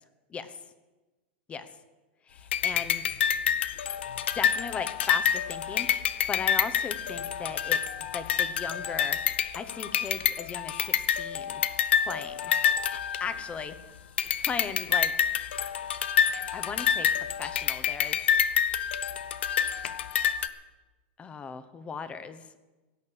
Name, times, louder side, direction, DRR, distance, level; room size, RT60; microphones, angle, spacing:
voice 1, 2.3-3.1 4.3-7.8 8.1-11.6 12.0-12.5 12.9-13.8 14.4-15.1 16.3-18.5 21.2-22.4, left 6 dB, 20° left, 12 dB, 1.0 m, -37 dB
sound 1, 2.5-13.7 14.2-20.5, left 8 dB, 80° left, 0.8 m, -28 dB
16.5 x 6.7 x 8.6 m, 1.2 s
supercardioid pair, 135°, 6 cm